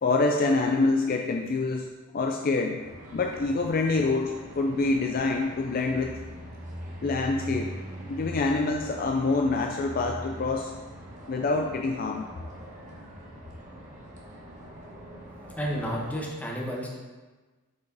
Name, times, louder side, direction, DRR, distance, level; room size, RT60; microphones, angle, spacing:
voice 1, 0.0-1.9 2.1-2.8 3.1-6.1 7.0-7.7 8.1-10.7 11.3-12.3, left 3 dB, 40° left, 2 dB, 0.4 m, -26 dB
sound 1, 2.8-16.1, equal, 35° right, 1.2 m, -42 dB
voice 2, 15.5-16.9, equal, 5° left, -3 dB, 1.1 m, -31 dB
7.3 x 4.8 x 4.1 m, 1.3 s
head